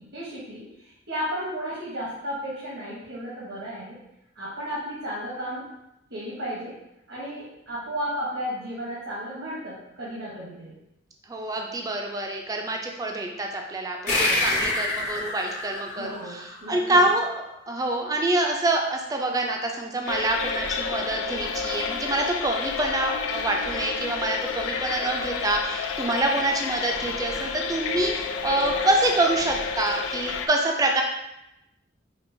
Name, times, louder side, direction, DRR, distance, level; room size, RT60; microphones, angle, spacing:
voice 1, 0.1-4.0 4.4-5.7 6.1-6.8 7.1-10.8 14.1-14.4 16.0-17.0, equal, 80° right, -7 dB, 0.9 m, -34 dB
voice 2, 11.3-17.3 17.7-31.0, right 2 dB, 20° right, 2 dB, 0.3 m, -26 dB
sound 1, 14.1-17.0, left 2 dB, 40° left, 0.8 m, -27 dB
sound 2, 20.1-30.5, left 5 dB, 85° left, 0.3 m, -30 dB
4.3 x 2.3 x 2.6 m, 0.88 s
head